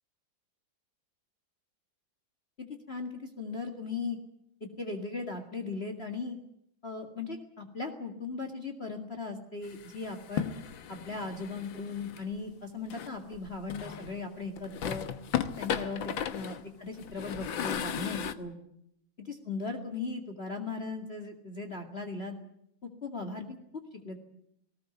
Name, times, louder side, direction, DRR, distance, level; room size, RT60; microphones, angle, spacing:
voice 1, 2.9-4.2 4.8-6.4 6.8-10.5 10.9-15.1 15.6-18.6 19.2-22.4 22.8-23.6 23.9-24.2, left 4 dB, 30° left, 5 dB, 2.3 m, -38 dB
sound 1, 9.6-12.2 12.9-14.2 14.6-18.3, left 9 dB, 90° left, 1.9 m, -36 dB
19.0 x 19.0 x 9.2 m, 0.74 s
omnidirectional pair, 2.1 m